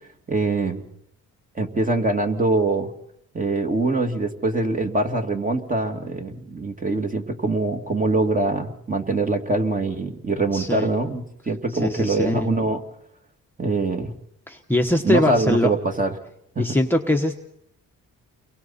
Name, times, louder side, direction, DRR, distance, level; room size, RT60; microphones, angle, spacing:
voice 1, 0.3-0.9 1.6-2.9 3.3-12.8 13.6-14.1 15.0-16.1 16.6-16.7, right 2 dB, 25° right, 4 dB, 2.5 m, -23 dB
voice 2, 10.5-10.9 11.8-12.5 14.5-15.7 16.6-17.4, left 1 dB, 5° left, 2 dB, 1.2 m, -22 dB
30.0 x 23.0 x 4.3 m, 0.76 s
cardioid pair, 130°, 33 cm